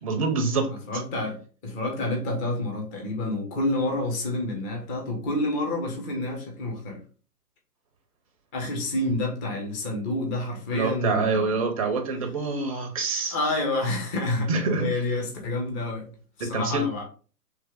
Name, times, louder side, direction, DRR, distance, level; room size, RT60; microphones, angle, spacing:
voice 1, 0.0-0.7 10.7-13.4 14.5-14.9 16.4-16.8, right 4 dB, 20° right, 0.6 m, -26 dB
voice 2, 0.7-7.0 8.5-11.5 13.3-16.1 16.4-17.0, left 2 dB, 20° left, 1.0 m, -28 dB
4.5 x 3.3 x 3.5 m
hypercardioid pair, 140°, 48 cm